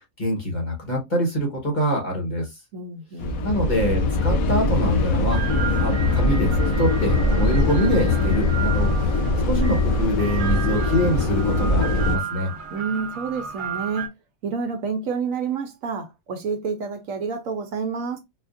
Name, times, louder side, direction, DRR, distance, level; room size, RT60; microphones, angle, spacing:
voice 1, 0.2-2.5 3.4-5.4 5.8-9.2 9.5-12.5, equal, 35° left, 1.2 m, -25 dB
voice 2, 2.7-3.5 12.7-14.1 14.4-18.2, right 5 dB, 70° right, 1.0 m, -29 dB
sound 1, 3.2-12.2, left 2 dB, 75° left, 1.1 m, -22 dB
sound 2, 4.9-14.1, right 7 dB, 50° right, 0.6 m, -34 dB
4.3 x 2.4 x 2.5 m
omnidirectional pair, 1.5 m